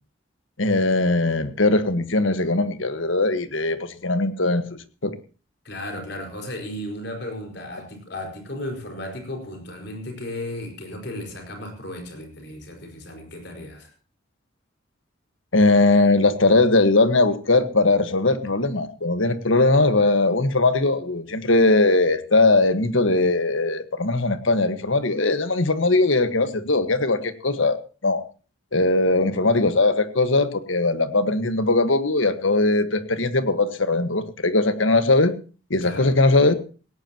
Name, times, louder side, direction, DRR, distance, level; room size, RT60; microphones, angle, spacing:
voice 1, 0.6-4.6 5.0-5.1 15.5-27.8 28.0-28.2 28.7-35.3 35.7-36.5, left 2 dB, 75° left, 10 dB, 1.6 m, -20 dB
voice 2, 5.6-13.9 35.8-36.1, left 1 dB, 60° left, 4 dB, 5.2 m, -35 dB
18.0 x 18.0 x 3.0 m, 0.37 s
head